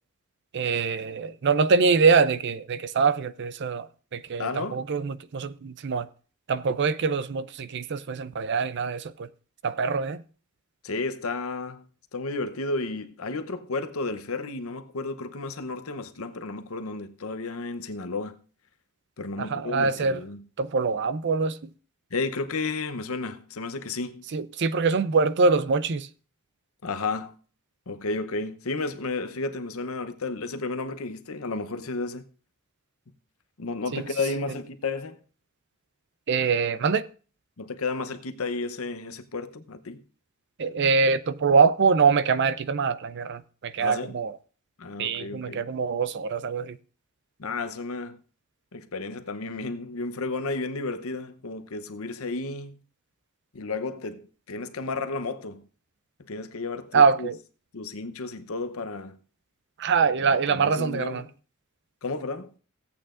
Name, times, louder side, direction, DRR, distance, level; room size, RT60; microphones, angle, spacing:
voice 1, 0.5-6.1 6.5-9.3 9.6-10.2 19.4-20.2 20.6-21.6 24.3-26.1 33.9-34.0 36.3-37.1 40.6-44.3 45.0-46.8 56.9-57.4 59.8-61.2, right 5 dB, 55° right, 0.5 m, -24 dB
voice 2, 4.4-4.8 10.8-11.8 12.1-18.4 19.2-20.4 22.1-24.2 26.8-27.3 27.9-32.3 33.6-35.2 37.6-40.0 43.8-44.2 44.8-45.6 47.4-48.2 48.7-52.8 53.5-55.6 56.3-57.3 57.7-59.2 60.5-61.3 62.0-62.5, left 3 dB, 75° left, 0.8 m, -32 dB
16.5 x 8.5 x 2.5 m
head